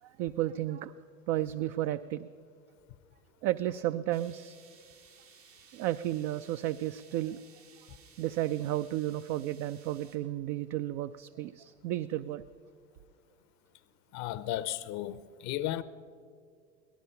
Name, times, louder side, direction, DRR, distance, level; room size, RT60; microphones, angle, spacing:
voice 1, 0.0-0.9 1.3-2.3 3.4-4.5 5.7-7.4 8.2-12.4, right 14 dB, 55° right, 0.5 m, -33 dB
sound 1, 4.1-10.2, right 7 dB, 85° right, 1.9 m, -58 dB
voice 2, 14.1-15.8, left 13 dB, 45° left, 0.7 m, -34 dB
18.0 x 12.5 x 5.7 m
hypercardioid pair, 85°, 38 cm